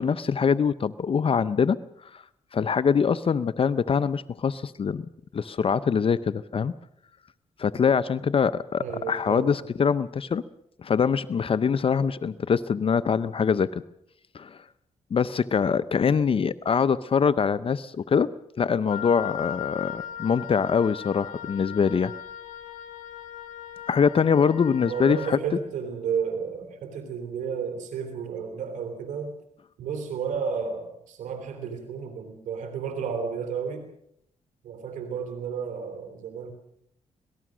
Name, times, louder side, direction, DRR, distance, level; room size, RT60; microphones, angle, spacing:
voice 1, 0.0-1.8 2.1-2.2 2.5-5.0 5.3-6.7 7.6-10.4 10.8-13.8 14.3-14.6 15.1-18.3 18.6-22.1 23.9-25.4, left 6 dB, 45° left, 15 dB, 0.7 m, -24 dB
voice 2, 8.8-9.5 24.8-29.4 29.8-33.9 34.6-36.5, right 6 dB, 85° right, 7 dB, 3.3 m, -32 dB
Wind instrument woodwind instrument, 18.9-25.4, left 10 dB, 90° left, 2.6 m, -38 dB
25.5 x 19.0 x 6.2 m, 0.71 s
cardioid pair, 80°, 13 cm